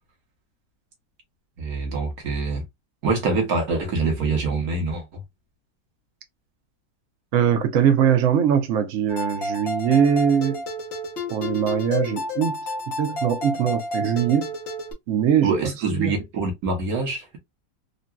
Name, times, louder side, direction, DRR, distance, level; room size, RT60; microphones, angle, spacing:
voice 1, 1.6-2.6 3.0-5.0 15.4-17.4, right 3 dB, 55° right, 1.4 m, -25 dB
voice 2, 7.3-10.6 11.3-12.6 12.9-14.5 15.1-15.6 15.9-16.1, right 8 dB, 80° right, 0.6 m, -21 dB
sound 1, 9.1-14.9, left 1 dB, 50° left, 0.7 m, -30 dB
3.7 x 2.2 x 2.2 m
omnidirectional pair, 2.0 m